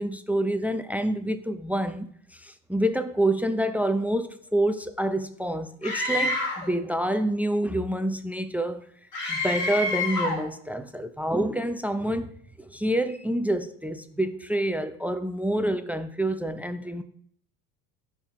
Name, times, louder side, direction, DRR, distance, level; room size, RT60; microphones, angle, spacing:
voice 1, 0.0-8.8 9.3-17.0, right 1 dB, 5° right, 0.7 m, -27 dB
Screaming, 5.8-6.7 9.1-10.5, left 2 dB, 85° left, 2.8 m, -28 dB
12.5 x 5.0 x 3.8 m
hypercardioid pair, 70°, 47 cm